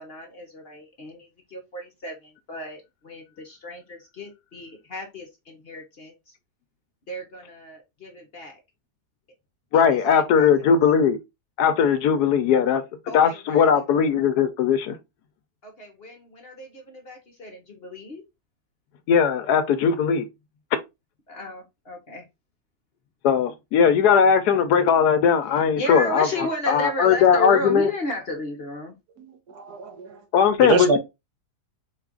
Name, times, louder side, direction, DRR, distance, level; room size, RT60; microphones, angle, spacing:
voice 1, 0.0-6.3 7.1-8.6 9.7-10.5 13.1-13.7 15.6-18.2 21.3-22.3 25.7-29.0, left 1 dB, 45° left, 0.9 m, -34 dB
voice 2, 9.7-11.2 11.6-12.8 13.1-15.0 19.1-20.3 23.2-26.3 26.7-27.9 30.3-31.0, left 7 dB, 75° left, 1.1 m, -19 dB
voice 3, 29.2-30.2 30.6-31.0, right 4 dB, 70° right, 1.3 m, -25 dB
4.6 x 2.4 x 3.6 m
omnidirectional pair, 1.8 m